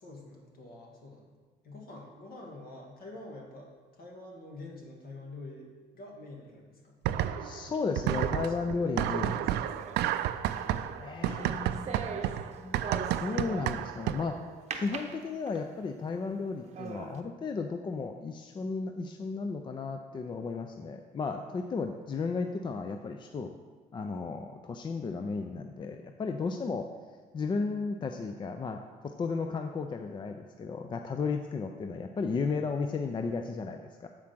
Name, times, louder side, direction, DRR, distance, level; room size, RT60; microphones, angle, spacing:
voice 1, 0.0-1.3 1.6-7.0 8.4-9.7 10.6-10.9 11.3-12.1, left 2 dB, 60° left, -1 dB, 2.0 m, -47 dB
sound 1, 7.0-7.6 8.0-14.4, right 12 dB, 80° right, 0.4 m, -31 dB
voice 2, 7.4-9.4 11.0-12.8 13.2-14.4 14.7-23.5 23.9-26.9 27.3-34.1, left 4 dB, 30° left, 6 dB, 0.4 m, -34 dB
sound 2, 9.6-14.0 14.7-15.8 16.3-16.4 16.7-17.2, right 5 dB, 40° right, 0.7 m, -42 dB
7.4 x 4.9 x 5.9 m, 1.5 s
cardioid pair, 110°, 17 cm